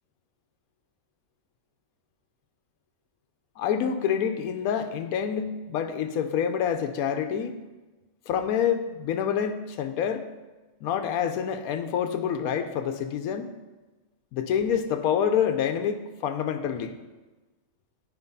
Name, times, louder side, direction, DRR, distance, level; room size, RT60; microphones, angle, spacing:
voice 1, 3.6-7.6 8.3-10.3 10.8-13.5 14.3-17.0, left 8 dB, 85° left, 8 dB, 1.1 m, -27 dB
9.5 x 4.6 x 5.4 m, 1.2 s
omnidirectional pair, 1.5 m